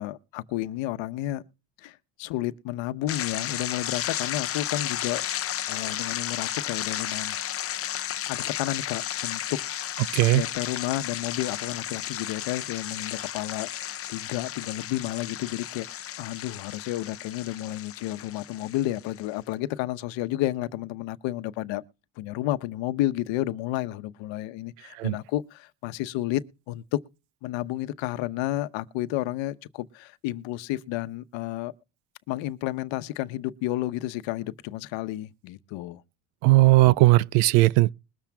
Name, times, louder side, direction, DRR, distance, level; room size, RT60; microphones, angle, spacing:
voice 1, 0.0-1.4 1.8-5.2 5.7-7.4 7.7-7.9 8.3-9.6 10.3-21.8 22.2-27.0 27.4-31.7 32.3-36.0, left 15 dB, 60° left, 1.0 m, -31 dB
sound 1, 3.1-19.2, left 11 dB, 30° left, 0.6 m, -33 dB
voice 2, 36.4-37.9, right 19 dB, 85° right, 0.6 m, -18 dB
21.5 x 7.2 x 3.5 m
cardioid pair, 135°, 50 cm